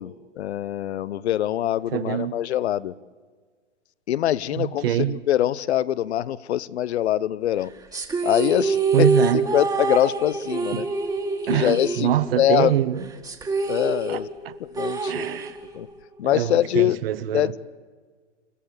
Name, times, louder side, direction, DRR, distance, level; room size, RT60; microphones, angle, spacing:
voice 1, 0.0-2.9 4.1-7.7 8.2-9.1 9.3-10.9 11.5-12.1 12.4-12.7 13.7-14.3 14.6-15.3 15.7-15.9 16.2-17.0 17.3-17.6, left 12 dB, 60° left, 0.9 m, -23 dB
voice 2, 1.9-2.4 4.6-5.2 8.9-9.5 10.7-10.9 11.5-13.1 14.1-14.5 15.1-15.6 16.2-17.5, right 12 dB, 50° right, 1.1 m, -24 dB
sound 1, 7.9-12.6 12.8-12.9 13.2-15.9, right 3 dB, 10° right, 2.0 m, -26 dB
29.0 x 14.0 x 8.6 m
hypercardioid pair, 125°, 37 cm